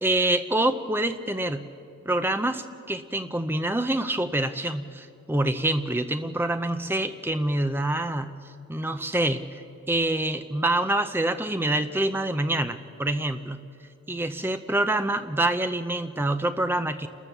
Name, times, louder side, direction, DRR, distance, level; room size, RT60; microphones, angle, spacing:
voice 1, 0.0-1.7 2.1-8.3 8.7-9.4 9.9-13.6 14.1-17.1, right 1 dB, 10° right, 9 dB, 0.6 m, -26 dB
29.5 x 13.5 x 6.9 m, 2.5 s
head